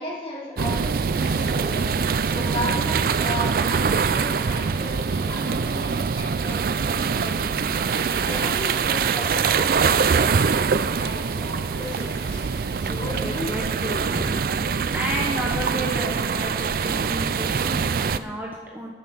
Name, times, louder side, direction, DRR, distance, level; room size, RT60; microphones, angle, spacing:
voice 1, 0.0-1.9 2.2-10.5 10.9-12.4 12.8-13.6, equal, 30° left, -6 dB, 3.1 m, -35 dB
sound 1, 0.6-18.2, right 5 dB, 55° right, 0.4 m, -24 dB
sound 2, 1.1-14.2, right 2 dB, 70° right, 1.1 m, -42 dB
voice 2, 10.6-11.0 12.8-18.9, equal, 10° right, -2 dB, 0.9 m, -32 dB
10.5 x 6.3 x 6.9 m, 1.3 s
head